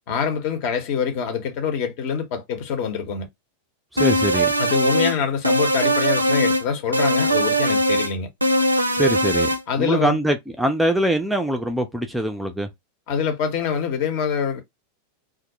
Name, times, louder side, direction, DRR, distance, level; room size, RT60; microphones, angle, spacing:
voice 1, 0.1-3.3 4.6-8.3 9.7-10.2 13.1-14.6, left 7 dB, 45° left, 0.8 m, -25 dB
voice 2, 3.9-4.5 8.9-9.5 9.8-12.7, right 1 dB, 5° right, 0.4 m, -23 dB
sound 1, 4.0-5.2 5.4-6.6 6.9-8.1 8.4-9.6, right 1 dB, 85° right, 0.3 m, -20 dB
2.3 x 2.0 x 2.7 m
figure-of-eight pair, 90°, 0 cm